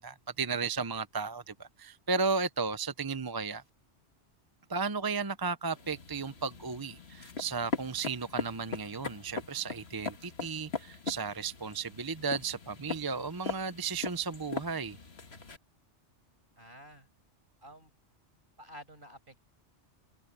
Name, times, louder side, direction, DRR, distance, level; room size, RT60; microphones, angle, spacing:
voice 1, 0.0-3.6 4.7-15.0, right 4 dB, 25° right, 0.6 m, -34 dB
sound 1, 5.7-15.6, left 4 dB, 60° left, 1.9 m, -40 dB
voice 2, 16.6-17.1 17.6-17.9 18.6-19.4, equal, 45° right, 6.3 m, -50 dB
omnidirectional pair, 1.2 m